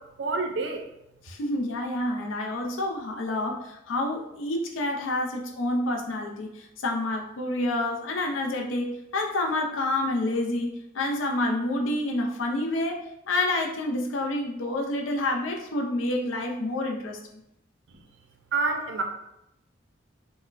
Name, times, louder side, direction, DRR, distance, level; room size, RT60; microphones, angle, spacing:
voice 1, 0.2-0.8 18.5-19.0, right 3 dB, 60° right, 4 dB, 0.4 m, -27 dB
voice 2, 1.2-17.4, left 1 dB, 80° left, 1 dB, 0.5 m, -28 dB
4.2 x 2.1 x 2.4 m, 0.84 s
head